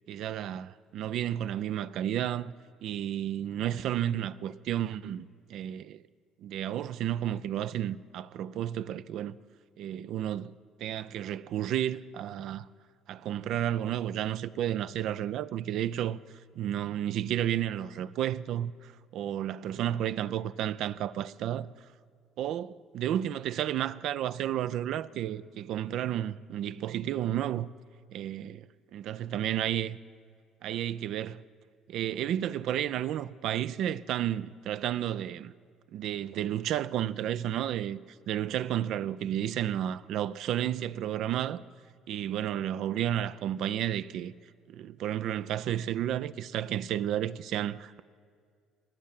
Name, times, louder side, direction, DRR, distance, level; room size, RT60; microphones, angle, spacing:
voice 1, 0.1-2.5 2.8-6.0 6.4-9.4 9.8-10.5 10.8-12.7 13.1-16.2 16.6-21.7 22.4-27.7 28.1-30.0 30.6-31.4 31.9-35.5 35.9-38.0 38.3-41.6 42.1-44.3 44.7-48.0, right 11 dB, 65° right, 0.3 m, -32 dB
19.5 x 7.4 x 7.4 m
hypercardioid pair, 60°, 0 cm